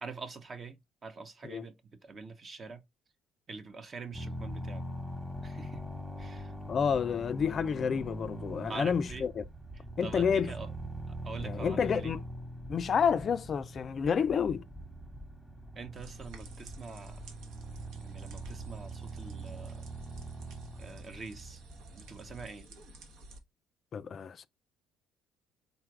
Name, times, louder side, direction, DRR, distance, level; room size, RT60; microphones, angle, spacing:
voice 1, 0.0-2.8 3.5-4.8 5.4-5.9 6.2-6.5 8.7-9.3 10.0-10.7 11.1-12.1 15.8-17.2 18.0-19.9 20.8-21.6 22.0-22.7, right 4 dB, 40° right, 0.8 m, -45 dB
sound 1, 4.1-22.5, right 1 dB, 5° right, 1.0 m, -43 dB
voice 2, 6.7-9.4 10.0-10.5 11.4-12.2 12.7-14.6 23.9-24.5, left 7 dB, 45° left, 0.3 m, -29 dB
sound 2, 16.0-23.4, right 1 dB, 80° right, 0.9 m, -52 dB
3.9 x 2.3 x 4.6 m
cardioid pair, 90°, 0 cm